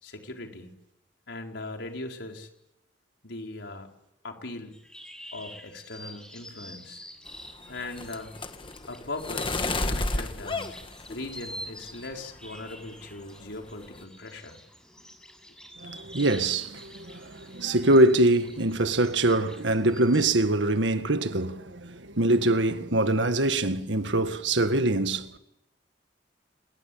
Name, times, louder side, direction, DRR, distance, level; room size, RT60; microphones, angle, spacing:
voice 1, 0.0-0.7 1.3-2.5 3.2-3.9 4.2-4.9 5.3-7.0 7.7-8.4 8.9-10.7 11.1-14.6, left 2 dB, 90° left, 4.7 m, -39 dB
sound 1, 4.7-20.4, equal, 5° left, 6.6 m, -47 dB
sound 2, 7.3-11.7 12.1-12.6 12.8-13.1 13.4-14.0, left 2 dB, 30° left, 1.5 m, -32 dB
voice 2, 15.8-25.3, right 2 dB, 90° right, 1.7 m, -24 dB
27.5 x 22.0 x 8.7 m
head